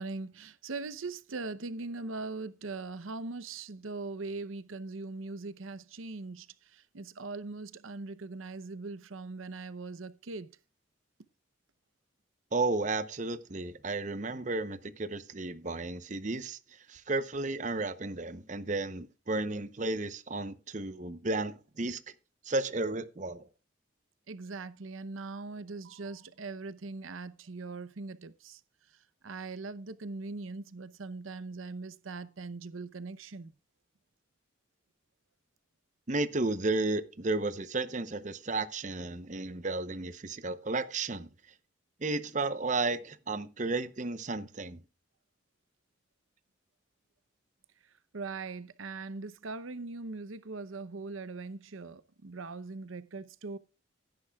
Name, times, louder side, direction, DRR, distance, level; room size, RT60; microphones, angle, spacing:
voice 1, 0.0-10.5 24.3-28.6 29.2-33.5 48.1-53.6, right 3 dB, 90° right, 0.7 m, -41 dB
voice 2, 12.5-16.6 16.9-22.0 22.4-23.4 36.1-41.3 42.0-44.8, right 3 dB, 40° right, 0.8 m, -33 dB
16.5 x 10.0 x 2.3 m
head